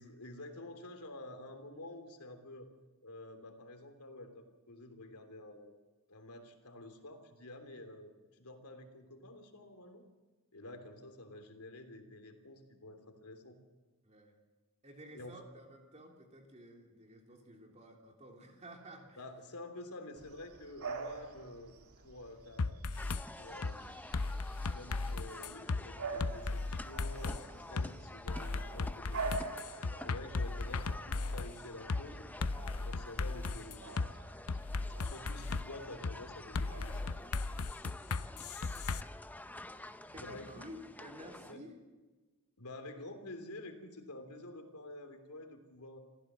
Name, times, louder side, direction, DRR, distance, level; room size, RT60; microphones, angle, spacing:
voice 1, 0.0-2.7 3.0-5.7 6.1-10.0 10.5-13.6 15.1-15.4 19.2-21.7 22.0-22.8 23.4-24.1 24.7-29.6 30.0-32.3 32.8-34.0 35.0-37.1 40.1-40.5 41.4-41.6 42.6-46.0, left 2 dB, 90° left, 7 dB, 3.2 m, -49 dB
voice 2, 14.8-19.2 40.0-41.7, equal, 30° right, 2 dB, 3.3 m, -53 dB
Bark / Bird vocalization bird call bird song, 20.2-37.7, right 4 dB, 85° right, 2.3 m, -47 dB
sound 1, 22.6-23.2 23.6-23.8 24.1-25.8 26.2-27.4 27.8-27.9 28.3-31.5 31.9-32.0 32.4-34.1 34.5-35.6 36.0-36.2 36.5-39.0, left 3 dB, 75° left, 0.7 m, -36 dB
sound 2, 23.0-41.5, left 1 dB, 5° left, 0.7 m, -50 dB
26.5 x 15.5 x 7.5 m, 1.3 s
head